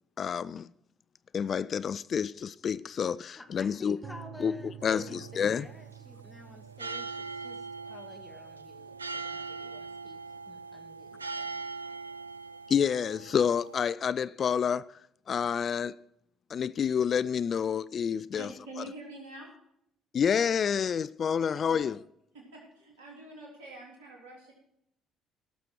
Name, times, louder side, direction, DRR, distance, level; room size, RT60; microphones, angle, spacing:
voice 1, 0.2-0.7 1.3-4.0 4.4-5.7 12.7-14.9 15.3-15.9 16.5-18.5 20.1-22.0, left 7 dB, 45° left, 0.3 m, -28 dB
voice 2, 3.4-10.2 10.5-11.6, left 1 dB, 10° left, 2.1 m, -50 dB
sound 1, 4.0-11.9, right 10 dB, 40° right, 1.3 m, -51 dB
sound 2, 4.8-13.9, right 4 dB, 90° right, 0.3 m, -41 dB
voice 3, 18.3-19.5 21.5-21.9 22.3-24.5, right 2 dB, 75° right, 3.4 m, -46 dB
17.5 x 6.7 x 4.6 m
figure-of-eight pair, 50°, 0 cm